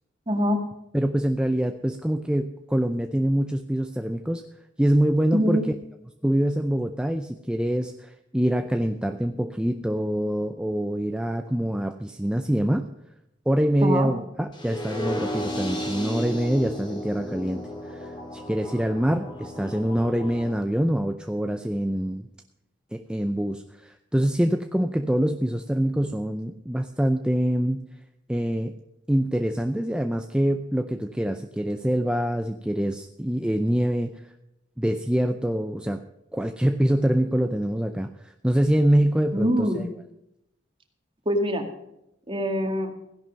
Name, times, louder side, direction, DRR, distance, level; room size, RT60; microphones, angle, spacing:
voice 1, 0.3-0.6 5.3-5.7 13.8-14.1 39.3-39.8 41.3-41.6 42.3-42.9, equal, 25° right, 4 dB, 2.0 m, -23 dB
voice 2, 0.9-4.5 4.8-5.8 6.2-12.9 13.5-22.3 22.9-27.8 28.3-28.7 29.1-34.1 34.8-36.0 36.3-39.8, equal, 5° right, 7 dB, 0.5 m, -25 dB
sound 1, 14.5-20.5, equal, 25° left, 3.6 m, -34 dB
15.5 x 11.0 x 5.3 m, 0.85 s
head